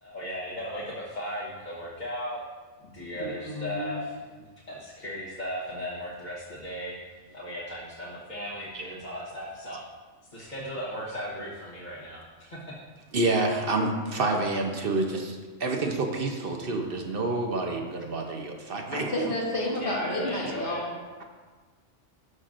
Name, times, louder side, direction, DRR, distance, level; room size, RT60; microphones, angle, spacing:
voice 1, 0.0-2.4 2.8-4.2 4.7-7.0 7.3-9.8 10.3-12.6 19.8-20.8, equal, 40° left, -8 dB, 1.3 m, -36 dB
voice 2, 3.1-4.0 18.9-20.9, left 1 dB, 65° left, -4 dB, 1.8 m, -31 dB
voice 3, 13.1-19.3, right 2 dB, 55° right, 2 dB, 0.9 m, -28 dB
13.0 x 5.8 x 2.5 m, 1.4 s
omnidirectional pair, 1.3 m